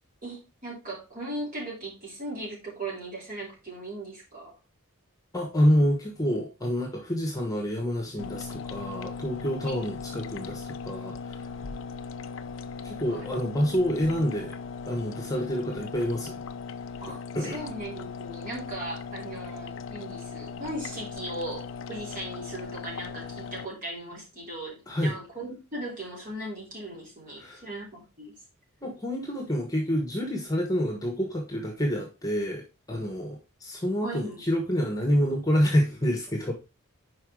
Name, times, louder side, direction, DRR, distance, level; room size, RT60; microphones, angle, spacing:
voice 1, 0.2-4.5 9.7-9.8 13.1-13.3 17.0-28.4 34.0-34.4, right 1 dB, 35° right, -4 dB, 3.7 m, -38 dB
voice 2, 5.3-11.4 12.8-14.6 14.9-16.4 17.3-17.6 24.9-25.1 27.4-27.6 28.8-36.5, equal, 15° left, 1 dB, 1.3 m, -27 dB
sound 1, 8.2-23.7, left 5 dB, 60° left, 0.5 m, -38 dB
5.5 x 5.0 x 4.9 m, 0.29 s
head